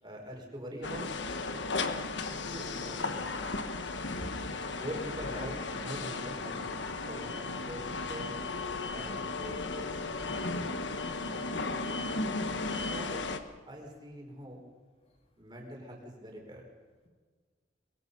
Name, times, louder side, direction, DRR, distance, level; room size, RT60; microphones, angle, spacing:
voice 1, 0.0-1.1 2.5-3.3 4.8-6.6 7.0-8.4 8.9-9.9 11.3-11.4 12.9-13.2 13.7-14.6 15.4-16.6, equal, 25° right, 0 dB, 4.6 m, -43 dB
sound 1, 0.8-13.4, left 3 dB, 75° left, 1.4 m, -35 dB
voice 2, 3.8-4.3 13.7-13.9 15.0-15.1, equal, 30° left, 2 dB, 2.5 m, -52 dB
23.0 x 22.0 x 5.5 m, 1.5 s
head